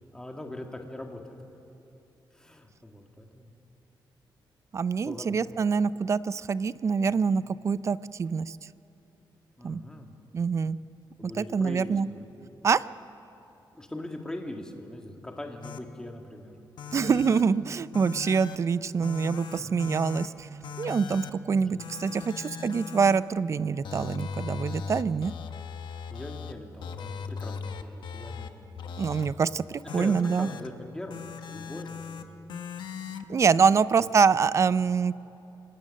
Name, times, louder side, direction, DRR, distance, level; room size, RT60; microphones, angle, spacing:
voice 1, 0.1-1.4 2.3-3.5 5.0-5.4 7.1-7.3 9.6-10.2 11.2-12.2 13.7-16.5 19.6-19.8 21.5-22.3 26.1-28.8 29.9-32.2 33.5-33.7 34.3-34.5, left 1 dB, 10° left, 2 dB, 1.8 m, -41 dB
voice 2, 4.7-8.6 9.6-9.8 10.3-10.8 11.2-12.1 12.6-12.8 16.9-20.5 20.8-25.3 29.0-30.5 33.3-35.2, right 5 dB, 35° right, 17 dB, 0.4 m, -25 dB
sound 1, 15.6-15.8 16.8-17.4 17.9-18.6 19.0-20.3 20.6-21.3 21.8-23.2 23.8-26.5 26.8-28.5 28.8-29.3 29.9-30.7 31.1-32.2 32.5-33.2, left 6 dB, 65° left, 1.1 m, -38 dB
28.0 x 18.5 x 6.5 m, 2.9 s
wide cardioid pair, 140°, 8 cm